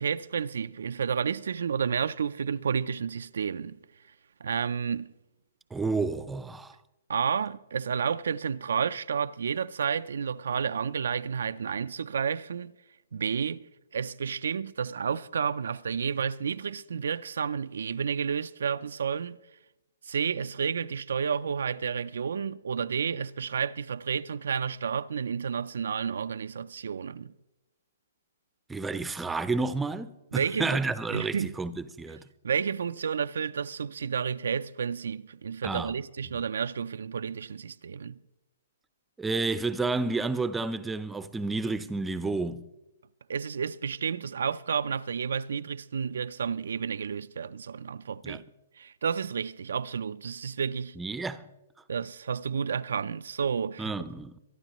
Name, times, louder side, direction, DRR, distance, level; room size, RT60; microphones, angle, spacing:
voice 1, 0.0-3.8 4.4-5.1 7.1-12.7 13.1-13.6 13.9-19.4 20.0-27.3 30.3-30.7 31.1-31.5 32.4-38.2 43.3-48.4 48.8-51.0 51.9-53.9, right 6 dB, 75° right, 0.4 m, -31 dB
voice 2, 5.7-6.7 28.7-31.7 32.0-32.2 35.6-35.9 39.2-42.6 48.2-48.4 51.0-51.4 53.8-54.4, right 3 dB, 5° right, 0.6 m, -30 dB
23.0 x 11.5 x 3.0 m
hypercardioid pair, 150°, 0 cm